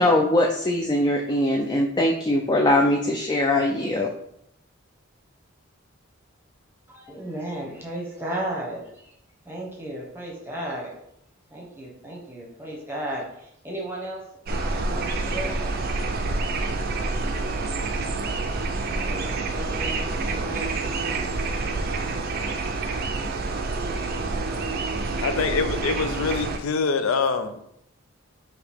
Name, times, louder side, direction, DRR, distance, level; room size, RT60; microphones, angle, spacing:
voice 1, 0.0-4.1, left 1 dB, 20° left, 1 dB, 0.3 m, -21 dB
voice 2, 6.9-9.1 9.4-11.0 11.5-14.2 14.5-16.3 19.1-20.9, right 1 dB, 10° right, -3 dB, 1.0 m, -35 dB
sound 1, 14.5-26.6, right 3 dB, 50° right, 0.4 m, -28 dB
voice 3, 25.2-27.5, left 4 dB, 85° left, 8 dB, 0.4 m, -24 dB
4.9 x 2.8 x 3.4 m, 0.74 s
head